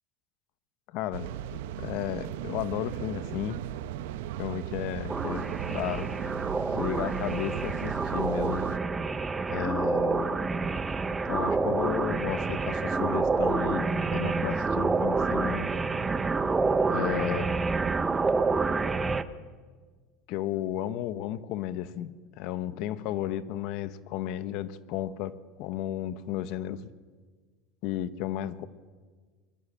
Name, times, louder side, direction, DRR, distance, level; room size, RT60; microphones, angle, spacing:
voice 1, 0.9-3.6 4.4-6.1 6.7-8.7 9.5-10.4 11.2-15.7 16.9-17.5 20.3-25.3 25.6-26.9 27.8-28.7, left 12 dB, 60° left, 14 dB, 1.2 m, -33 dB
sound 1, 1.1-8.8, right 12 dB, 80° right, 1.1 m, -37 dB
sound 2, 5.1-19.2, right 4 dB, 15° right, 1.0 m, -28 dB
23.5 x 21.0 x 8.8 m, 1.5 s
supercardioid pair, 120°, 0 cm